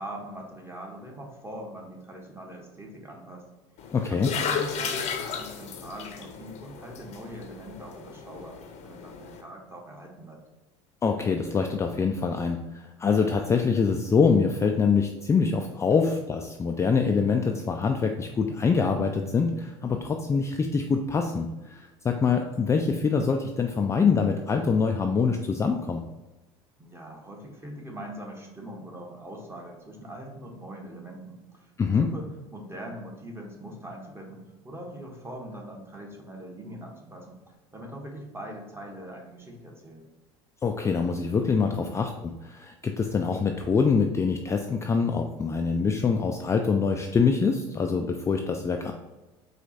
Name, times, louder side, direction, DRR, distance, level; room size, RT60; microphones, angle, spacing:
voice 1, 0.0-3.5 4.1-10.4 26.8-37.4 37.7-40.0 41.6-41.9, right 1 dB, 15° right, 0 dB, 1.1 m, -42 dB
sound 1, 3.8-9.4, left 6 dB, 50° left, 0.7 m, -34 dB
voice 2, 3.9-4.3 11.0-26.0 31.8-32.1 40.6-42.1 42.4-48.9, left 5 dB, 20° left, 3 dB, 0.3 m, -25 dB
4.4 x 2.4 x 4.0 m, 1.1 s
hypercardioid pair, 80°, 15 cm